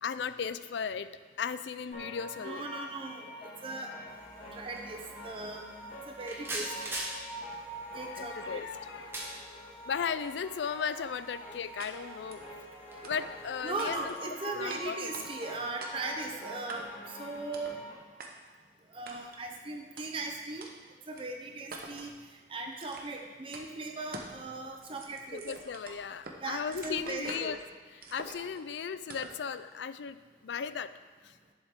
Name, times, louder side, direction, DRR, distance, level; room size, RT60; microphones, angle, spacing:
voice 1, 0.0-1.1 1.4-2.6 7.9-9.2 9.9-12.4 13.0-14.1 14.5-15.3 25.3-27.6 27.9-30.2 30.4-30.9 31.2-31.3, left 6 dB, 80° left, 13 dB, 0.4 m, -36 dB
sound 1, 1.9-17.9, equal, 40° left, 2.9 m, -45 dB
voice 2, 2.4-3.9 4.5-5.6 6.1-7.0 7.9-8.6 13.6-16.9 17.2-17.8 18.9-20.7 21.1-22.1 22.5-25.6 26.4-27.5, right 3 dB, 30° right, 3 dB, 0.6 m, -38 dB
sound 2, 4.1-14.0, right 1 dB, 15° right, 1.3 m, -45 dB
sound 3, 11.8-11.9 12.3-12.5 13.0-13.5 13.8-14.3 14.7-14.8 15.1-15.5 15.8-16.2 16.7-17.1 17.5-17.8 18.2-18.3 19.1-19.4 20.0-20.1 20.6-20.7 21.2-21.3 21.7-22.1 22.8-23.2 23.5-23.7 24.1-24.4 24.7-26.4 26.7-27.6 28.0-28.6 29.1-29.4, right 3 dB, 55° right, 1.0 m, -45 dB
11.0 x 7.2 x 3.7 m, 1.4 s
head